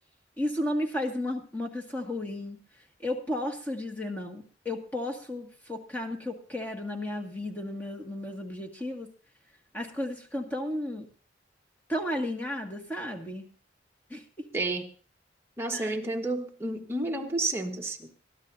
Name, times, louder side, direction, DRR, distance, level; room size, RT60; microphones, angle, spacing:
voice 1, 0.4-2.6 3.0-9.1 9.7-11.1 11.9-13.5 14.1-14.5 15.7-16.0, left 1 dB, 10° left, 3 dB, 1.8 m, -33 dB
voice 2, 14.5-14.9 15.6-18.1, right 2 dB, 15° right, 1 dB, 1.3 m, -31 dB
22.5 x 12.5 x 2.7 m, 0.38 s
head